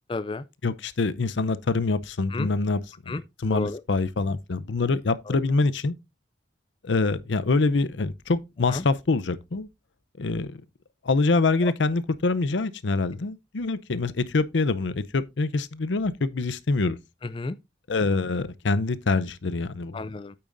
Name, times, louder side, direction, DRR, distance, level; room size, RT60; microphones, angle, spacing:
voice 1, 0.1-0.4 2.3-2.5 3.1-3.2 3.5-3.8 5.3-5.4 8.7-8.8 11.6-11.7 17.2-17.6 19.9-20.3, left 3 dB, 30° left, 0.4 m, -31 dB
voice 2, 0.6-5.9 6.8-9.7 10.2-10.6 11.0-17.0 17.9-20.0, left 3 dB, 85° left, 0.7 m, -25 dB
8.6 x 8.6 x 2.6 m
head